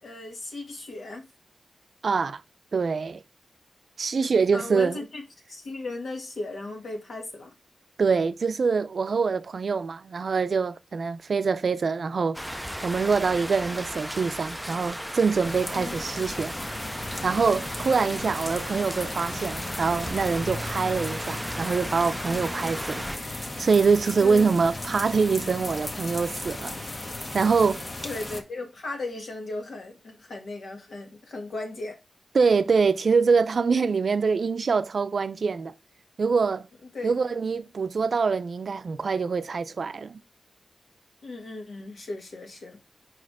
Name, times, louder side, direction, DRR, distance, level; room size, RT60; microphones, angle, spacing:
voice 1, 0.0-1.2 4.5-5.2 5.5-7.5 15.7-16.0 24.1-24.5 28.0-32.0 36.9-37.2 41.2-42.8, left 2 dB, 75° left, 2.1 m, -36 dB
voice 2, 2.0-2.4 2.7-3.2 4.0-5.0 8.0-12.4 12.8-16.5 17.2-26.8 27.3-27.8 32.3-35.7 36.2-36.7 37.0-40.2, right 5 dB, 60° right, 0.5 m, -24 dB
sound 1, 12.3-23.2, equal, 5° right, 0.4 m, -36 dB
sound 2, 15.4-28.4, left 2 dB, 30° left, 0.9 m, -36 dB
4.9 x 4.2 x 4.8 m
wide cardioid pair, 100°, 0 cm